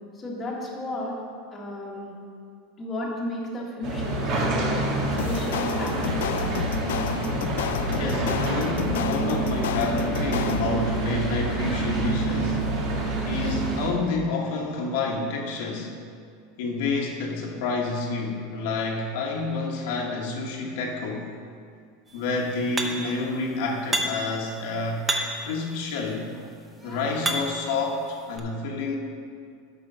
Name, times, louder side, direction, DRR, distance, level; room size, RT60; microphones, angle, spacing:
voice 1, 0.1-1.2 1.5-2.2 2.8-5.0 5.2-6.6, left 1 dB, 15° left, -3 dB, 1.5 m, -34 dB
sound 1, 3.8-13.9, right 2 dB, 45° right, 1.7 m, -27 dB
sound 2, 5.2-10.9, left 10 dB, 90° left, 0.3 m, -32 dB
voice 2, 7.9-12.7 13.3-16.0 16.6-21.3 22.1-25.1 25.4-26.3 26.8-29.0, left 3 dB, 65° left, 0 dB, 1.2 m, -29 dB
sound 3, 22.8-23.2 23.9-24.4 25.1-25.5 26.3-27.7 28.4-28.5, right 1 dB, 10° right, 0.7 m, -29 dB
8.9 x 6.1 x 5.4 m, 2.3 s
supercardioid pair, 160°, 0 cm